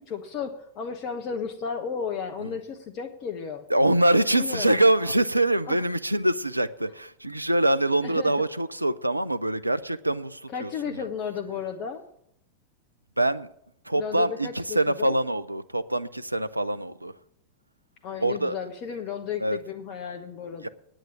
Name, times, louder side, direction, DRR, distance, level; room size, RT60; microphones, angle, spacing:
voice 1, 0.1-3.6 4.3-5.1 5.7-5.8 8.0-8.3 10.5-12.0 14.0-15.1 18.0-20.7, left 6 dB, 40° left, 3 dB, 1.1 m, -34 dB
voice 2, 3.7-11.1 13.2-13.5 13.9-17.1 18.2-18.6 19.4-19.6 20.6-20.7, right 1 dB, 85° right, 13 dB, 0.5 m, -24 dB
9.4 x 9.0 x 8.7 m, 0.74 s
figure-of-eight pair, 90°, 0 cm